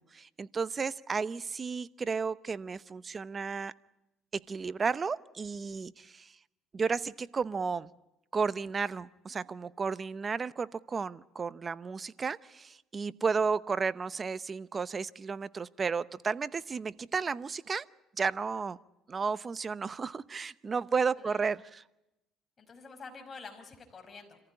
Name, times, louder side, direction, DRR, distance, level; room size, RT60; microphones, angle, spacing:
voice 1, 0.0-3.7 4.3-6.3 6.7-7.9 8.3-17.8 18.2-18.8 19.1-21.6, right 5 dB, 35° right, 17 dB, 0.8 m, -33 dB
voice 2, 22.6-24.4, left 4 dB, 35° left, 4 dB, 5.4 m, -47 dB
26.5 x 15.0 x 9.8 m, 0.92 s
cardioid pair, 90°, 0 cm